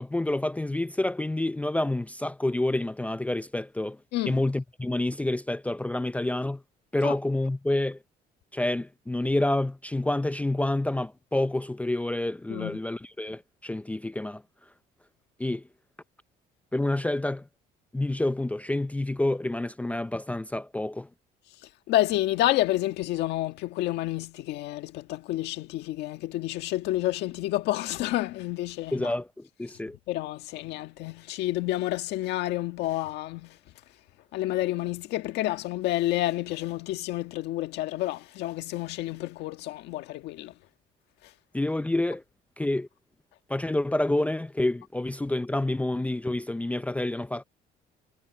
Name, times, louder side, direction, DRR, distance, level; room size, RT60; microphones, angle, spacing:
voice 1, 0.0-4.0 4.3-6.6 6.9-8.0 8.5-14.4 15.4-15.6 16.7-17.5 17.9-21.1 28.9-30.0 41.5-42.2 42.6-42.9 43.5-47.4, left 1 dB, 10° left, 0.5 m, -28 dB
voice 2, 21.9-29.1 30.1-33.6 34.3-40.5, left 15 dB, 85° left, 1.6 m, -29 dB
cardioid pair, 110°, 17 cm